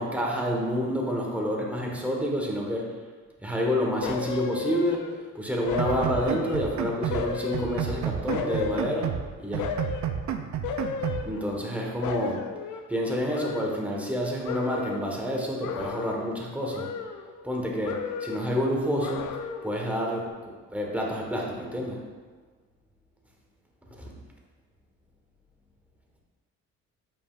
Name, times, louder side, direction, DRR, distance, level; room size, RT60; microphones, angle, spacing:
voice 1, 0.0-2.9 3.4-9.7 11.2-12.5 12.9-16.9 17.4-22.0 23.9-24.1, equal, 5° right, -2 dB, 1.4 m, -29 dB
sound 1, 4.0-5.3 5.7-6.7 7.1-9.2 9.6-10.2 10.6-11.8 12.0-14.2 14.4-15.1 15.6-16.4 16.7-17.6 17.8-18.6 19.0-19.8 20.2-20.3, left 6 dB, 75° left, 0.6 m, -34 dB
sound 2, 5.8-7.3 7.5-9.3 9.5-11.2, right 9 dB, 70° right, 0.6 m, -31 dB
8.3 x 5.4 x 2.5 m, 1.4 s
cardioid pair, 90°, 30 cm